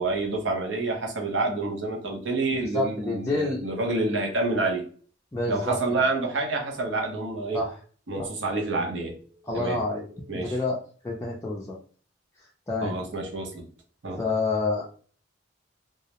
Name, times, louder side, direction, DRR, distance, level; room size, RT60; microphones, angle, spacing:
voice 1, 0.0-4.8 5.5-7.6 8.1-9.2 9.5-9.8 10.3-10.6 12.8-13.7 14.0-14.2, right 3 dB, 75° right, 0.7 m, -28 dB
voice 2, 2.7-3.6 5.3-5.8 7.5-7.7 8.2-8.3 9.5-10.1 10.3-10.8 11.0-11.8 12.7-13.0 14.1-14.9, left 2 dB, 15° left, 0.4 m, -28 dB
2.3 x 2.0 x 2.8 m
head